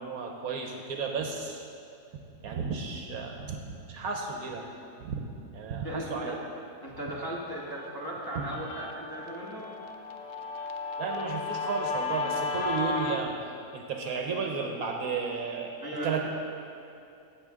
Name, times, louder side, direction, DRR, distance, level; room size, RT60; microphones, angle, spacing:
voice 1, 0.0-1.6 2.1-4.7 5.0-5.3 5.5-6.4 11.0-13.4 13.7-16.3, right 5 dB, 65° right, 2 dB, 1.1 m, -33 dB
voice 2, 5.8-6.4 6.8-9.7 15.8-16.3, right 1 dB, 15° left, -4 dB, 0.9 m, -37 dB
Guitar, 7.7-13.2, left 4 dB, 60° left, 0.8 m, -34 dB
16.0 x 6.6 x 3.6 m, 2.6 s
omnidirectional pair, 1.8 m